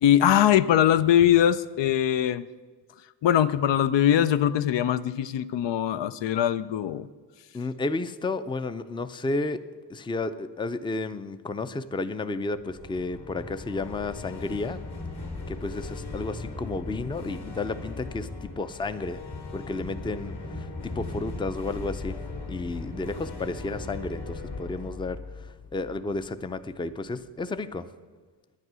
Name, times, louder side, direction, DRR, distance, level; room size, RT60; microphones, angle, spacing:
voice 1, 0.0-2.4 3.2-7.1, left 10 dB, 85° left, 14 dB, 0.6 m, -21 dB
voice 2, 7.5-9.6 9.9-14.8 15.5-19.2 19.5-22.2 22.5-27.9, left 3 dB, 10° left, 12 dB, 0.4 m, -32 dB
sound 1, 12.6-26.6, left 3 dB, 65° left, 2.5 m, -38 dB
11.0 x 9.9 x 6.2 m, 1.4 s
wide cardioid pair, 120°, 42 cm